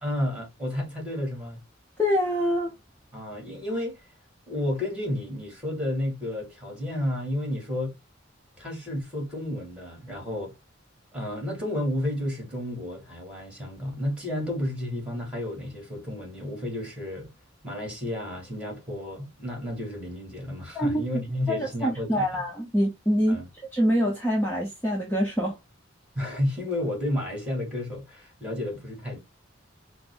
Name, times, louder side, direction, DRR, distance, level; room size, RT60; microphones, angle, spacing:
voice 1, 0.0-1.6 3.1-4.1 4.5-8.0 8.6-10.5 11.1-17.3 17.6-22.4 23.3-23.5 26.2-29.2, left 1 dB, 5° right, 2.1 m, -31 dB
voice 2, 2.0-2.7 20.7-21.0 21.5-23.4 23.7-25.6, equal, 10° left, 0.9 m, -25 dB
5.7 x 2.1 x 3.4 m
head